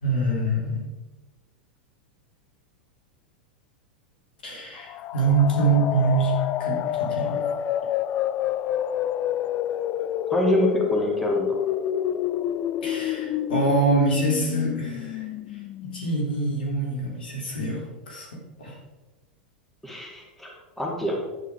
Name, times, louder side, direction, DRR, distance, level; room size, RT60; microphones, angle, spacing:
voice 1, 0.0-0.8 4.4-7.4 12.8-15.3 15.8-17.8 18.1-18.3 18.6-18.8, right 3 dB, 75° left, -1 dB, 3.5 m, -25 dB
sound 1, 4.8-16.5, left 11 dB, 40° left, 0.5 m, -28 dB
voice 2, 10.3-11.6 19.8-21.2, left 1 dB, 5° left, -2 dB, 3.2 m, -25 dB
10.0 x 9.2 x 4.8 m, 1.2 s
hypercardioid pair, 95°, 5 cm